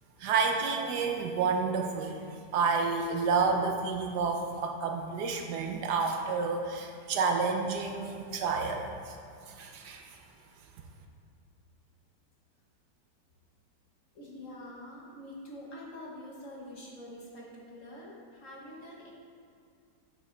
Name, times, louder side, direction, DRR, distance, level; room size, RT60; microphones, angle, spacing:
voice 1, 0.2-9.2 9.5-10.2, right 4 dB, 70° right, 3 dB, 1.2 m, -30 dB
voice 2, 14.1-19.1, left 1 dB, 50° left, -3 dB, 1.5 m, -46 dB
8.9 x 7.1 x 3.2 m, 2.3 s
omnidirectional pair, 1.9 m